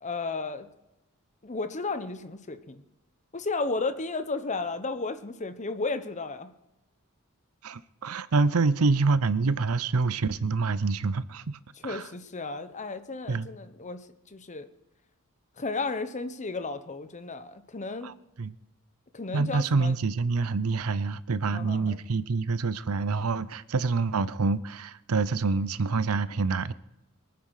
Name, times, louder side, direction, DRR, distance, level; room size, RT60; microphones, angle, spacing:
voice 1, 0.0-0.7 1.4-2.8 3.3-6.5 11.8-14.7 15.6-18.1 19.1-20.0 21.5-22.0, left 3 dB, 35° left, 1.0 m, -33 dB
voice 2, 7.6-12.0 13.3-13.5 18.0-18.1 18.4-18.5 19.3-26.7, right 4 dB, 80° right, 0.6 m, -26 dB
23.0 x 9.5 x 4.9 m
head